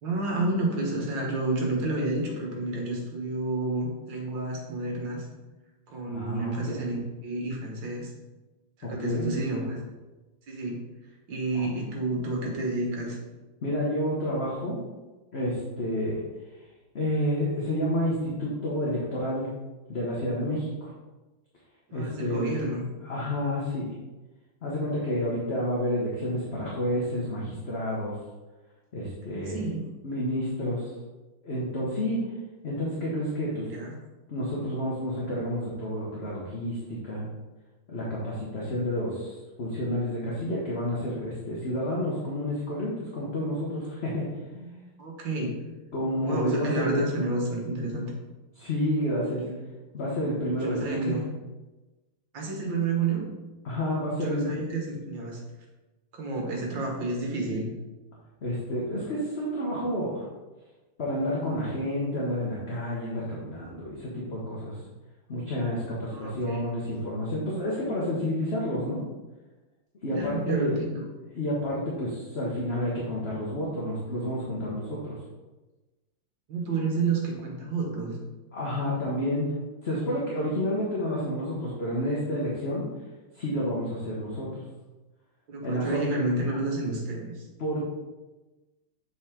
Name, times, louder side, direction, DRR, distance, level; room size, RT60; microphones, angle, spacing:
voice 1, 0.0-5.3 5.9-8.1 8.9-9.8 10.5-10.8 11.3-13.2 21.9-22.9 29.3-29.8 33.6-33.9 44.5-44.7 45.0-45.5 46.2-48.1 49.4-49.6 50.6-51.2 52.3-53.2 54.1-55.4 56.1-57.7 66.1-66.6 70.1-71.0 76.5-78.2 85.5-87.5, right 2 dB, 60° right, -1 dB, 2.0 m, -30 dB
voice 2, 6.1-6.9 8.8-9.3 11.5-11.7 13.6-14.8 15.3-16.2 16.9-19.5 19.9-20.9 21.9-22.6 23.0-23.9 24.6-28.2 28.9-29.6 30.0-30.9 31.4-32.2 32.6-33.7 34.3-37.2 37.9-44.3 45.9-47.1 48.6-49.5 49.9-51.2 53.6-54.6 58.4-60.3 61.0-64.8 65.3-69.0 70.0-70.8 71.3-75.2 78.5-82.9 83.3-84.6 85.6-86.0 87.6-87.8, equal, 40° left, -5 dB, 1.1 m, -30 dB
7.3 x 4.5 x 3.7 m, 1.1 s
omnidirectional pair, 2.3 m